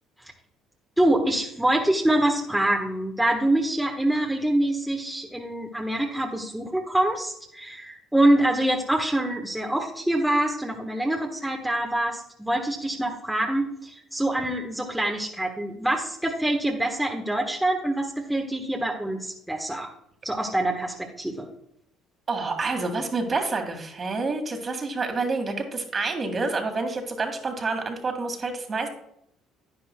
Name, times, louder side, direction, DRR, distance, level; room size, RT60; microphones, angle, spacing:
voice 1, 1.0-19.9 20.2-21.5, right 1 dB, 5° right, 0 dB, 1.2 m, -25 dB
voice 2, 22.3-28.9, right 3 dB, 40° right, 4 dB, 1.9 m, -28 dB
10.5 x 9.7 x 2.3 m, 0.77 s
supercardioid pair, 70°, 0 cm